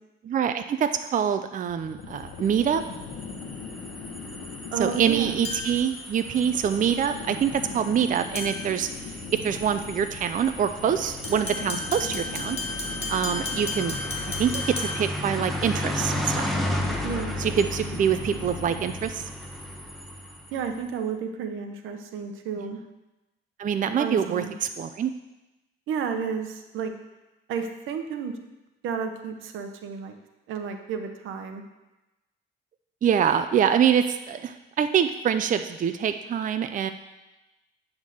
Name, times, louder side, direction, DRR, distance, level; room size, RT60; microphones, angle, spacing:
voice 1, 0.2-2.8 4.8-8.9 9.3-12.6 13.1-14.0 14.4-16.5 17.4-19.3 22.6-22.7 23.6-25.1 33.0-36.9, right 8 dB, 40° right, 9 dB, 0.5 m, -25 dB
sound 1, 1.7-19.3, left 5 dB, 90° left, 0.9 m, -40 dB
sound 2, 2.3-20.8, left 1 dB, ahead, 1.0 m, -35 dB
voice 2, 4.7-5.4 17.0-17.3 20.5-22.8 24.0-24.5 25.9-26.9 27.5-28.4 28.8-30.2 30.5-31.6, right 6 dB, 85° right, 6 dB, 0.8 m, -32 dB
sound 3, 5.4-5.9 8.3-8.8 11.2-15.2, left 2 dB, 30° left, 1.9 m, -33 dB
9.0 x 3.6 x 6.4 m, 1.0 s
cardioid pair, 90°, 20 cm